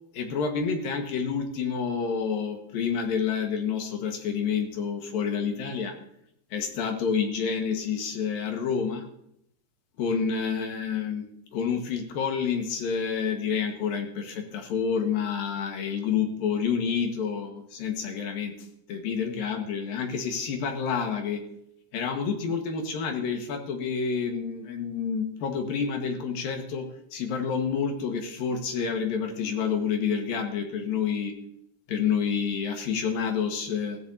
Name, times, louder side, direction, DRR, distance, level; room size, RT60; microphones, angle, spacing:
voice 1, 0.1-6.0 6.5-9.1 10.0-18.5 18.9-21.4 21.9-31.3 31.9-34.0, left 6 dB, 65° left, 3 dB, 3.1 m, -29 dB
16.5 x 15.0 x 2.8 m, 0.74 s
omnidirectional pair, 4.7 m